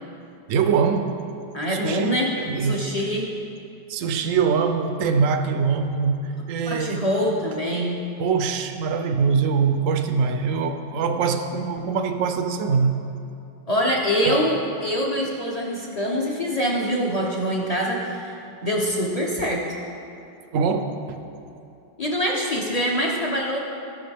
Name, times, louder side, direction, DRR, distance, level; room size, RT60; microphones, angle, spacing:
voice 1, 0.5-1.2 1.7-2.9 3.9-7.1 8.2-12.9 14.3-14.4 20.5-21.2, right 5 dB, 70° right, 7 dB, 0.7 m, -23 dB
voice 2, 1.5-2.3 2.6-3.3 6.7-8.0 13.7-19.6 22.0-23.6, equal, 35° left, -2 dB, 0.6 m, -24 dB
16.0 x 6.1 x 3.5 m, 2.6 s
omnidirectional pair, 2.0 m